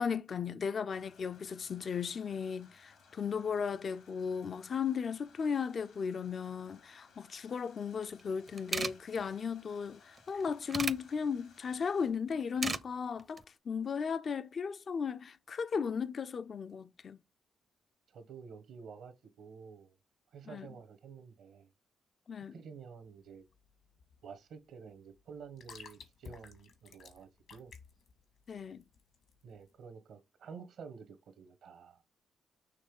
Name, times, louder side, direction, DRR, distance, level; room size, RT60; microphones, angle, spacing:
voice 1, 0.0-17.2 20.5-20.7 22.3-22.6 28.5-28.8, left 6 dB, 55° left, 0.4 m, -36 dB
sound 1, 0.9-12.1, left 5 dB, 90° left, 2.4 m, -62 dB
sound 2, 8.2-8.3 8.5-8.9 10.2-11.0 12.3-12.8 13.2-13.4, right 4 dB, 35° right, 0.5 m, -35 dB
voice 2, 18.1-19.9 20.3-21.7 22.5-23.4 24.2-27.7 29.4-32.0, right 6 dB, 80° right, 1.0 m, -50 dB
sound 3, 23.0-29.8, left 6 dB, 75° left, 1.4 m, -55 dB
6.5 x 3.1 x 5.1 m
cardioid pair, 75°, 0 cm